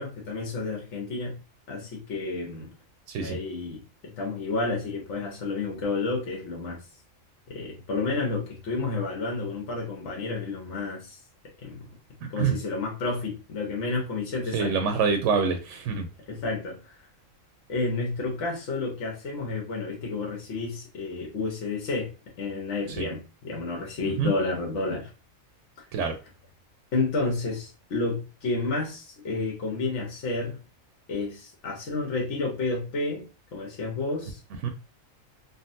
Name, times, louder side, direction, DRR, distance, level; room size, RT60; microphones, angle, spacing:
voice 1, 0.0-1.4 1.7-2.7 3.2-6.8 7.5-11.2 11.6-11.9 12.3-14.8 16.3-17.0 17.7-22.1 22.4-25.1 26.9-30.6 31.1-33.3 33.5-34.4, left 3 dB, 65° left, 0 dB, 1.2 m, -30 dB
voice 2, 12.2-12.6 14.5-16.1 22.9-23.1 24.0-24.3 25.9-26.2 34.6-34.7, right 5 dB, 70° right, 5 dB, 0.9 m, -26 dB
3.8 x 2.1 x 2.6 m, 0.32 s
omnidirectional pair, 1.4 m